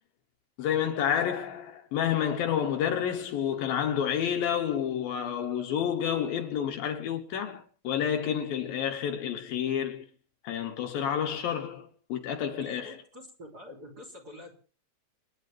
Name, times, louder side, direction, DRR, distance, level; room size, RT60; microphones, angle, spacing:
voice 1, 0.6-10.1 10.4-13.0, left 9 dB, 70° left, 2.7 m, -29 dB
voice 2, 12.5-14.5, left 1 dB, 25° right, 3.3 m, -46 dB
29.0 x 10.5 x 3.4 m
omnidirectional pair, 4.7 m